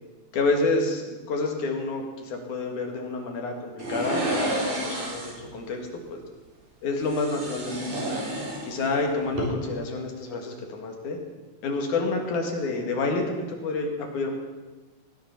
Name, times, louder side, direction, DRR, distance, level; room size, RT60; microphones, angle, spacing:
voice 1, 0.3-6.2 6.8-8.0 8.6-11.2 11.6-14.4, left 3 dB, 80° left, 2 dB, 3.3 m, -28 dB
sound 1, 3.8-5.4 7.0-9.0 9.3-9.4, right 1 dB, 85° right, 5.2 m, -30 dB
17.5 x 9.9 x 5.9 m, 1.2 s
omnidirectional pair, 3.5 m